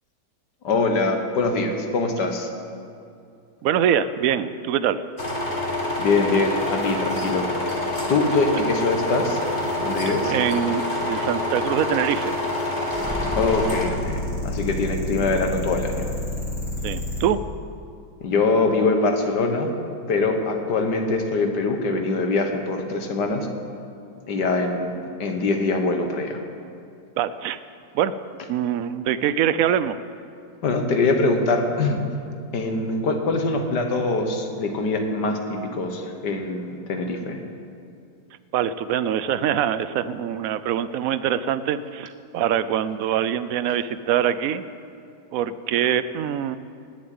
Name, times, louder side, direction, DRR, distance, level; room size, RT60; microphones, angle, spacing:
voice 1, 0.6-2.5 6.0-7.5 8.1-9.4 9.8-10.3 13.4-16.1 18.2-19.7 20.1-23.5 24.3-26.4 30.6-32.0 32.5-37.4, left 3 dB, 70° left, 5 dB, 1.9 m, -23 dB
voice 2, 3.6-5.0 8.5-8.7 10.3-12.4 16.8-17.4 27.2-27.6 27.9-28.2 28.5-30.0 38.5-44.6 45.3-46.6, right 9 dB, 70° right, 14 dB, 0.8 m, -24 dB
sound 1, 5.2-13.8, left 1 dB, 30° left, 2.1 m, -26 dB
sound 2, 12.9-17.2, left 1 dB, 5° left, 3.0 m, -29 dB
18.5 x 7.4 x 9.4 m, 2.4 s
omnidirectional pair, 1.9 m